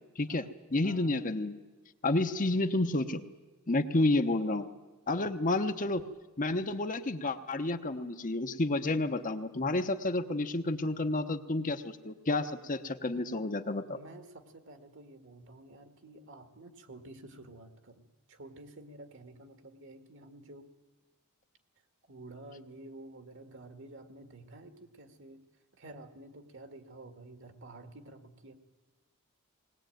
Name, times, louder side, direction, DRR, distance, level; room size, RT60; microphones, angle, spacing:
voice 1, 0.2-1.6 2.0-3.3 3.7-4.7 5.1-6.0 6.4-14.0, left 2 dB, 35° left, 8 dB, 0.9 m, -30 dB
voice 2, 0.8-1.2 13.9-20.7 22.1-25.4 25.8-28.5, right 2 dB, 60° right, 7 dB, 2.0 m, -50 dB
20.0 x 19.5 x 9.2 m, 1.2 s
head